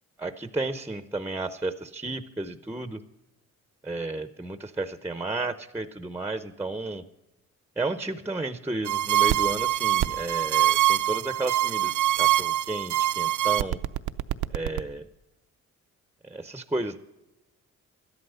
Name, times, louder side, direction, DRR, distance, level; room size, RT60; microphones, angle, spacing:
voice 1, 0.2-3.0 3.8-7.0 7.8-13.8 14.5-15.1 16.2-17.0, right 2 dB, 5° right, 11 dB, 0.6 m, -32 dB
sound 1, 8.9-14.8, right 13 dB, 75° right, 0.6 m, -24 dB
13.0 x 11.5 x 5.6 m, 0.97 s
cardioid pair, 90°, 30 cm